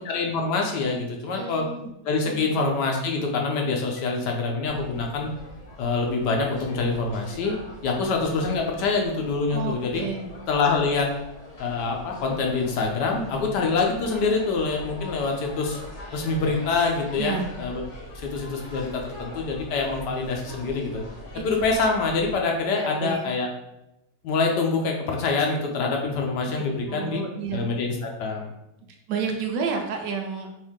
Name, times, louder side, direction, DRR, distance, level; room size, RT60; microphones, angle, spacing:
voice 1, 0.0-1.6 2.0-5.3 5.8-7.6 7.8-10.0 10.5-11.1 11.6-15.8 16.1-17.8 18.1-21.0 21.4-23.5 24.2-27.2 27.5-28.5, left 4 dB, 70° left, 1 dB, 1.3 m, -25 dB
voice 2, 1.2-1.9 2.2-2.5 9.5-10.3 17.2-17.5 21.3-21.4 22.7-23.3 26.0-26.2 26.6-27.6 29.1-30.5, right 5 dB, 80° right, 3 dB, 1.3 m, -31 dB
sound 1, 4.6-22.4, left 1 dB, 50° left, 1.1 m, -42 dB
4.4 x 2.6 x 3.6 m, 0.88 s
omnidirectional pair, 1.9 m